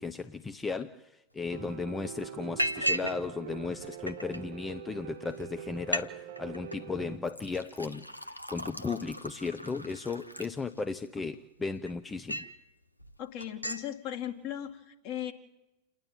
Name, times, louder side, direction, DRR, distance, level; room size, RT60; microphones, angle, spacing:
voice 1, 0.0-12.5, left 4 dB, 15° left, 10 dB, 0.6 m, -36 dB
Liquid, 1.4-1.5 1.9-2.1 2.6-3.2 3.5-4.4 5.1-5.2 5.4-5.5 5.8-6.1 6.4-6.8 7.2-11.1 11.6-12.6 13.0-13.2 13.4-13.9, equal, 90° left, 0.9 m, -36 dB
Piano, 1.5-7.2, right 10 dB, 55° right, 1.0 m, -44 dB
voice 2, 13.2-15.3, left 11 dB, 45° left, 4 dB, 2.2 m, -37 dB
28.5 x 10.5 x 9.1 m, 0.96 s
figure-of-eight pair, 90°, 0 cm